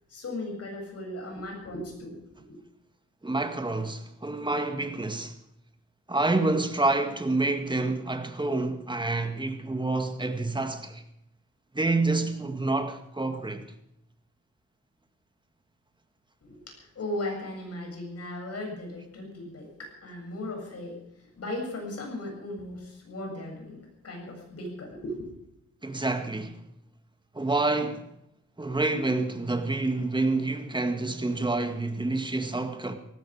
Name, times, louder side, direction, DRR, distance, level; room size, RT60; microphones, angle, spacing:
voice 1, 0.1-2.5 16.4-21.0 21.4-25.3, left 1 dB, 55° left, 7.9 m, -37 dB
voice 2, 3.2-5.3 6.1-11.0 11.7-13.7 25.8-26.6 27.3-28.1 28.6-33.0, right 2 dB, 15° right, 2.0 m, -28 dB
18.0 x 16.0 x 5.0 m
cardioid pair, 95°, 29 cm